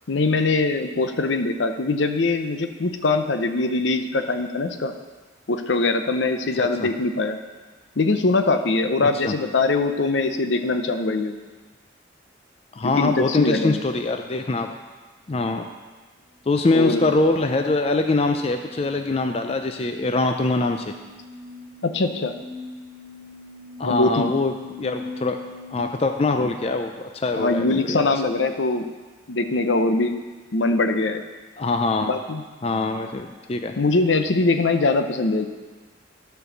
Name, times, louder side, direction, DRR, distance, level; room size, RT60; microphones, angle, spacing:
voice 1, 0.1-4.9 5.5-7.4 8.0-11.4 12.8-13.8 16.7-17.1 21.8-22.4 23.8-24.3 27.4-28.9 29.3-30.1 30.5-31.2 32.0-32.4 33.8-35.5, left 3 dB, 70° left, 7 dB, 0.7 m, -22 dB
voice 2, 6.6-6.9 9.0-9.3 12.8-14.7 15.3-15.7 16.5-20.9 23.8-25.4 25.7-28.1 31.6-32.1 32.6-33.8, left 3 dB, 30° left, 6 dB, 0.4 m, -23 dB
sound 1, 16.3-25.8, left 3 dB, 10° right, 1.4 m, -42 dB
12.5 x 4.6 x 6.7 m, 1.3 s
head